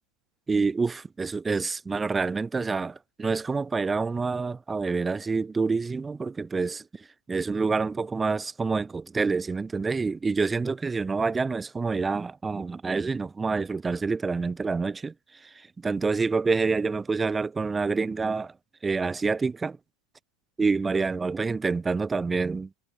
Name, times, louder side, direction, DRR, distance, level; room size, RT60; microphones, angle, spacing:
voice 1, 0.5-6.8 7.3-15.1 15.8-18.5 18.8-19.8 20.6-22.7, right 4 dB, 15° right, 2.5 m, -27 dB
figure-of-eight pair, 90°, 0 cm